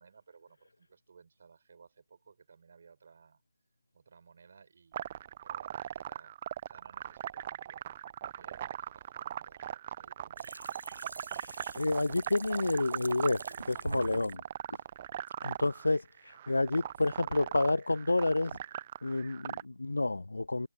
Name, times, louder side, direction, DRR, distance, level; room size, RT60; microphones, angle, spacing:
voice 1, 0.0-3.4 3.9-6.3 6.7-7.9 8.3-10.6 14.6-14.7, right 5 dB, 45° right, 4.4 m, -59 dB
sound 1, 4.9-19.6, right 11 dB, 30° right, 0.7 m, -40 dB
sound 2, 10.4-14.4 17.0-17.1, right 2 dB, 65° right, 0.4 m, -44 dB
voice 2, 11.4-14.4 15.4-18.6 19.0-20.7, left 2 dB, 70° left, 0.3 m, -30 dB
figure-of-eight pair, 150°, 0 cm